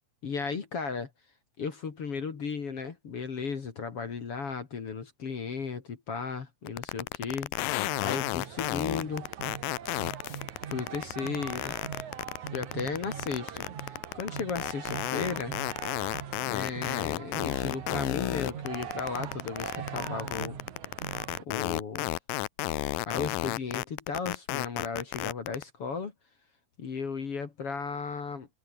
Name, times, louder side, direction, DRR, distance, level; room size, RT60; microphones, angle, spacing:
voice 1, 0.2-1.1 1.6-7.5 8.0-9.3 10.7-11.8 12.5-15.6 16.5-20.6 21.4-22.1 23.1-26.1 26.8-28.5, left 5 dB, 45° left, 2.9 m, -35 dB
sound 1, 6.7-25.6, left 20 dB, 80° left, 2.1 m, -32 dB
sound 2, 7.8-21.4, right 8 dB, 55° right, 3.4 m, -41 dB
omnidirectional pair, 4.3 m